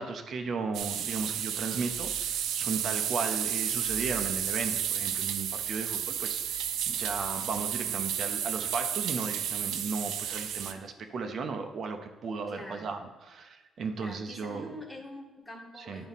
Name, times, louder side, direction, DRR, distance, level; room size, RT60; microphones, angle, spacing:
voice 1, 0.0-14.8 15.8-16.0, right 4 dB, 45° right, 5 dB, 0.6 m, -36 dB
sound 1, 0.7-10.7, right 9 dB, 85° right, 0.5 m, -32 dB
voice 2, 12.5-13.0 14.0-16.1, left 1 dB, 5° left, -1 dB, 1.1 m, -44 dB
10.5 x 4.1 x 4.1 m, 1.2 s
cardioid pair, 165°, 0 cm